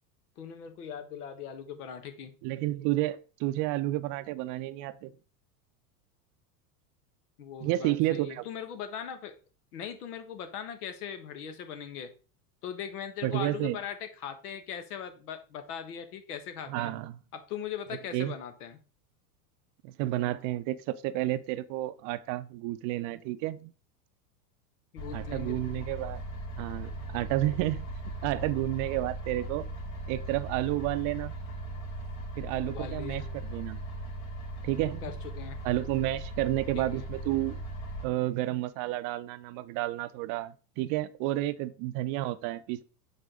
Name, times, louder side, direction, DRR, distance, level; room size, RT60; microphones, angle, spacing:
voice 1, 0.4-2.3 7.4-9.3 9.7-12.1 12.6-16.9 17.3-18.8 24.9-25.6 32.7-33.3 35.0-35.6 36.7-37.1, left 8 dB, 85° left, 1.4 m, -40 dB
voice 2, 2.4-5.1 7.6-8.4 13.2-13.8 16.7-17.2 18.1-18.3 20.0-23.7 25.1-26.2 26.6-27.9 28.2-29.7 30.1-31.3 32.4-33.2 33.5-33.8 34.6-35.1 35.6-37.6 38.0-42.8, right 16 dB, 45° right, 0.5 m, -31 dB
sound 1, 25.0-38.0, right 2 dB, 60° left, 2.5 m, -38 dB
6.6 x 4.9 x 3.8 m
supercardioid pair, 115°, 45 cm